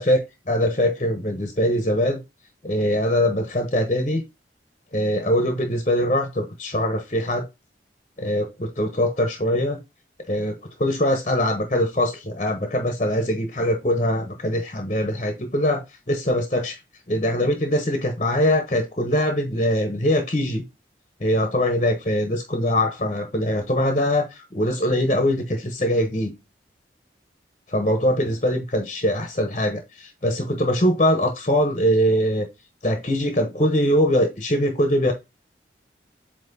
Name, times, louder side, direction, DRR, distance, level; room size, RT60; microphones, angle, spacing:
voice 1, 0.0-2.2 2.6-4.2 4.9-7.4 8.2-9.8 10.3-16.8 17.1-20.6 21.2-26.3 27.7-32.5 32.8-35.1, equal, 35° left, 1.2 m, -22 dB
8.4 x 3.0 x 4.2 m
head